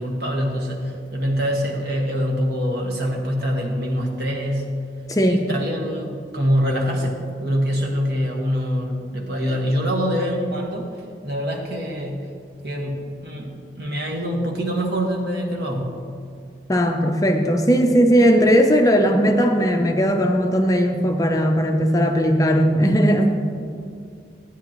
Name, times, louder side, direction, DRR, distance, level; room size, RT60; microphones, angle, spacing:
voice 1, 0.0-4.7 5.3-10.9 11.2-12.3 12.6-16.0, equal, 65° right, -1 dB, 1.5 m, -24 dB
voice 2, 5.1-5.5 16.7-23.3, equal, 20° left, 4 dB, 0.5 m, -18 dB
13.0 x 9.4 x 3.0 m, 2.3 s
head